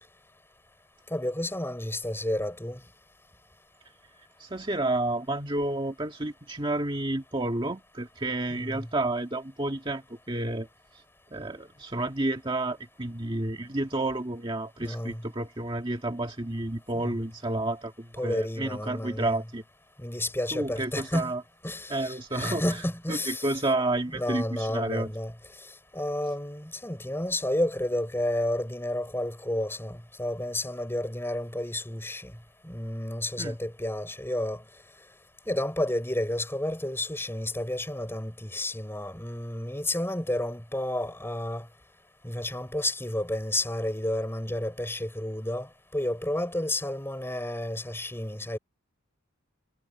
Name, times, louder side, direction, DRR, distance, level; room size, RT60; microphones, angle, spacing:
voice 1, 1.1-2.8 8.5-8.9 14.8-15.2 16.9-17.2 18.2-19.4 20.0-21.3 21.6-23.6 24.1-25.3 25.9-32.3 32.6-34.6 35.5-41.7 42.2-48.6, left 1 dB, 10° left, 5.7 m, -31 dB
voice 2, 4.4-10.7 11.3-19.6 20.5-21.4 21.9-22.6 23.1-25.1 33.4-33.6, right 2 dB, 25° right, 1.8 m, -30 dB
head